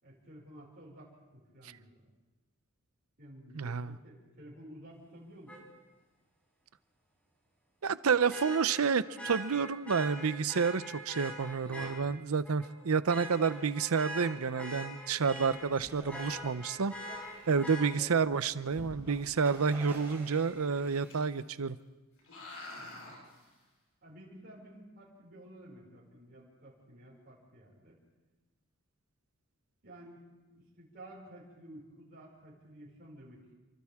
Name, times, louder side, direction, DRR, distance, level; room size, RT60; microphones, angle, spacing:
voice 1, 0.0-2.0 3.2-5.6 22.8-23.3 24.0-28.0 29.8-30.2 30.5-33.4, right 1 dB, 45° right, -6 dB, 5.8 m, -53 dB
voice 2, 3.5-3.9 7.8-16.9 17.5-21.8, right 5 dB, 85° right, 15 dB, 0.7 m, -29 dB
Vehicle horn car horn honking, 5.5-5.6 8.3-11.9 12.4-12.7 13.1-15.7 16.1-17.8 19.7-19.8, right 1 dB, 5° left, 5.2 m, -42 dB
sound 1, 13.3-13.5 13.9-14.0 14.5-14.7 15.1-15.2 15.4-15.5 15.7-15.8 16.3-16.5 16.9-17.8 18.5-19.1 20.8-21.4 21.7-21.8 22.2-23.6, left 2 dB, 80° left, 7.6 m, -51 dB
sound 2, 15.4-21.1, right 1 dB, 10° right, 6.9 m, -51 dB
29.5 x 24.5 x 3.6 m, 1.2 s
head